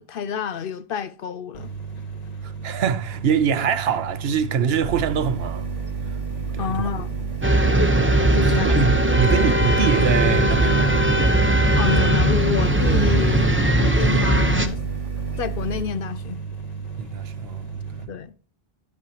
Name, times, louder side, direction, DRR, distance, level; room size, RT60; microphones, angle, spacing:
voice 1, 0.0-1.7 6.6-7.3 8.3-8.8 11.8-14.8 15.4-16.4 18.1-18.3, left 6 dB, 65° left, 0.8 m, -28 dB
sound 1, 1.5-18.1, right 5 dB, 40° left, 1.4 m, -34 dB
voice 2, 2.4-5.7 6.1-6.2 6.5-6.9 7.7-7.9 8.6-11.5 11.8-12.1 17.0-18.1, right 7 dB, 75° right, 0.9 m, -24 dB
sound 2, 4.8-15.8, right 5 dB, 35° right, 1.0 m, -31 dB
sound 3, 7.4-14.7, right 1 dB, 15° right, 0.8 m, -19 dB
10.5 x 8.4 x 2.8 m
omnidirectional pair, 1.1 m